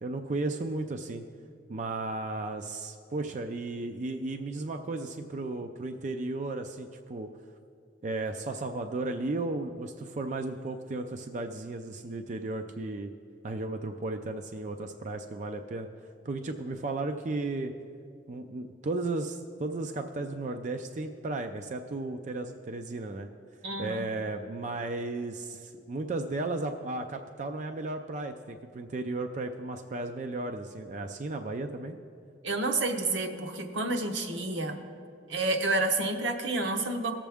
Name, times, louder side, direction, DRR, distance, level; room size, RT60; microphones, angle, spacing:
voice 1, 0.0-1.2 1.7-7.3 8.0-13.1 13.4-15.9 16.2-17.7 18.3-23.3 23.8-32.0, right 2 dB, 40° right, 5 dB, 0.4 m, -34 dB
voice 2, 23.6-24.1 32.4-34.8 35.3-37.1, right 2 dB, 85° right, 4 dB, 1.0 m, -29 dB
18.0 x 7.3 x 3.5 m, 2.4 s
head